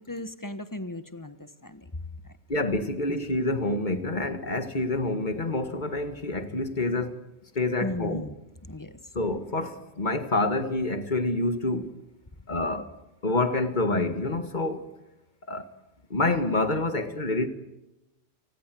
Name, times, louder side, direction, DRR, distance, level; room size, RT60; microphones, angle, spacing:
voice 1, 0.0-2.0 7.8-8.4 8.7-9.0, left 1 dB, 15° left, 1.3 m, -36 dB
voice 2, 2.5-7.2 7.6-8.2 9.1-12.0 12.5-12.9 13.2-14.9 15.5-15.7 16.1-17.5, left 2 dB, 40° left, 2.0 m, -27 dB
30.0 x 19.5 x 7.7 m
omnidirectional pair, 1.2 m